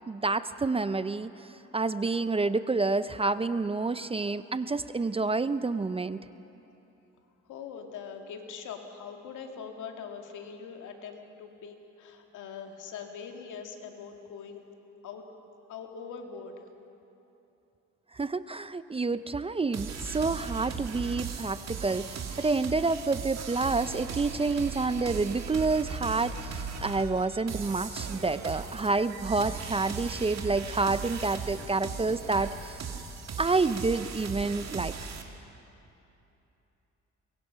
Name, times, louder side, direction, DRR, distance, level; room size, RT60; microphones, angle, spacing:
voice 1, 0.1-6.2 18.1-32.8 33.4-34.9, right 3 dB, 20° right, 13 dB, 0.5 m, -28 dB
voice 2, 7.5-14.6 15.0-15.3 15.7-16.5, left 6 dB, 80° left, 4 dB, 2.2 m, -42 dB
sound 1, 19.7-35.2, right 6 dB, 60° right, 2.1 m, -38 dB
23.5 x 22.0 x 5.7 m, 2.9 s
cardioid pair, 90°, 30 cm